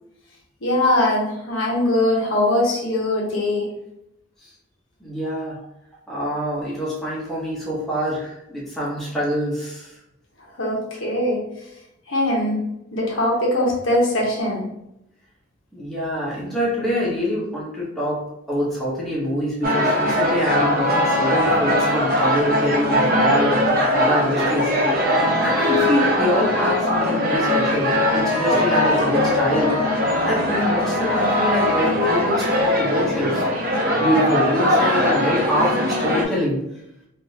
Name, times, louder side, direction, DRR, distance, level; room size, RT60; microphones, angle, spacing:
voice 1, 0.6-3.7 10.6-11.4 12.1-12.6 12.9-14.6, left 1 dB, 75° left, -3 dB, 1.0 m, -21 dB
voice 2, 5.0-5.6 6.1-9.9 15.7-18.2 18.5-24.7 25.4-29.8 30.2-33.4 34.0-36.6, equal, ahead, -7 dB, 0.8 m, -25 dB
sound 1, 19.6-36.2, left 1 dB, 45° right, 0.6 m, -20 dB
3.5 x 2.5 x 2.7 m, 0.83 s
head